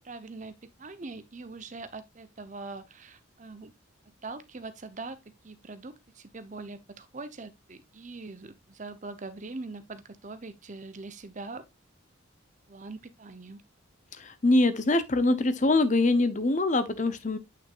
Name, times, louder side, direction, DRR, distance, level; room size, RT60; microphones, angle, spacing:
voice 1, 0.0-3.7 4.2-5.2 5.4-11.7 12.7-13.6, right 3 dB, 35° right, 0.8 m, -42 dB
voice 2, 14.1-17.4, left 2 dB, 35° left, 0.8 m, -24 dB
8.7 x 5.9 x 2.4 m
head